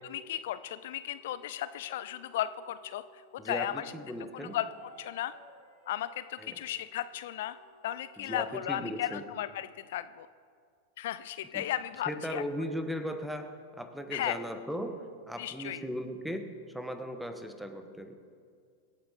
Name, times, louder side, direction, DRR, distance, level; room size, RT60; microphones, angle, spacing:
voice 1, 0.1-3.9 4.3-4.7 5.0-5.3 5.9-7.6 7.8-10.3 11.0-12.4 14.1-14.4 15.4-15.8, left 12 dB, 55° left, 14 dB, 0.3 m, -35 dB
sound 1, 1.0-8.4, equal, 50° right, 4.4 m, -57 dB
voice 2, 3.4-4.6 6.4-6.6 8.2-9.3 11.5-11.6 12.1-18.2, equal, ahead, 8 dB, 1.2 m, -38 dB
24.5 x 8.6 x 4.1 m, 2.1 s
figure-of-eight pair, 90°, 0 cm